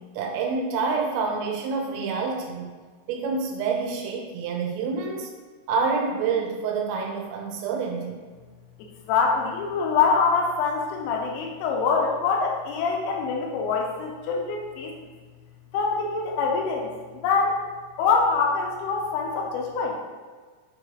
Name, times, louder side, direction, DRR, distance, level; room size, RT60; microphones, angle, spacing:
voice 1, 0.2-2.8 3.1-5.3 5.7-8.2, right 4 dB, 80° right, 0 dB, 3.6 m, -27 dB
voice 2, 8.8-14.9 15.7-17.6 18.0-20.0, left 5 dB, 85° left, 0 dB, 3.1 m, -24 dB
8.6 x 4.8 x 3.0 m, 1.5 s
omnidirectional pair, 5.9 m